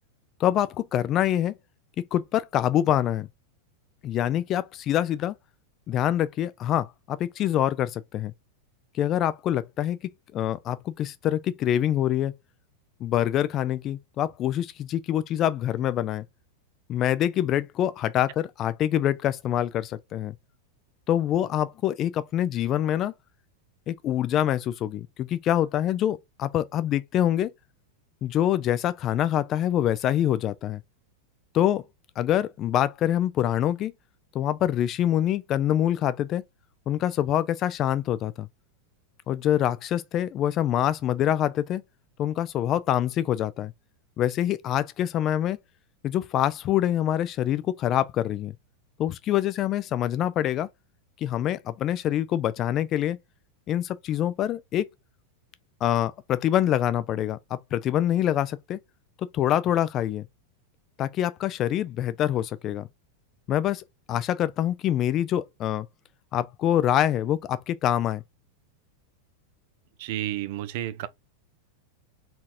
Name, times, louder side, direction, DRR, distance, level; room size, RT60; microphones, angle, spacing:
voice 1, 0.4-1.5 2.1-3.3 4.0-5.3 5.9-8.3 9.0-10.0 10.3-12.3 13.0-16.2 16.9-20.3 21.1-23.1 23.9-27.5 28.2-30.8 31.5-31.8 32.2-33.9 34.3-36.4 36.9-38.5 39.3-41.8 42.2-43.7 44.2-45.6 46.0-48.5 49.0-50.7 51.2-53.2 53.7-54.9 55.8-58.8 59.2-60.3 61.0-62.9 63.5-65.9 66.3-68.2, left 11 dB, 35° left, 0.5 m, -25 dB
voice 2, 70.0-71.1, right 13 dB, 50° right, 0.5 m, -31 dB
4.2 x 4.1 x 2.5 m
figure-of-eight pair, 90°, 0 cm